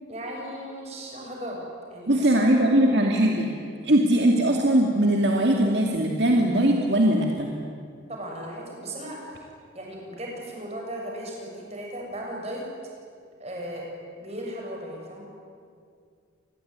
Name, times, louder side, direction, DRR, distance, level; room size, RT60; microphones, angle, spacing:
voice 1, 0.1-1.6 1.9-3.0 8.1-9.4 9.7-12.6 13.4-13.9 14.2-15.2, right 1 dB, 35° right, -1 dB, 7.2 m, -37 dB
voice 2, 2.1-3.5 3.8-7.5, right 1 dB, 60° right, 1 dB, 2.4 m, -20 dB
28.0 x 21.0 x 9.6 m, 2.2 s
head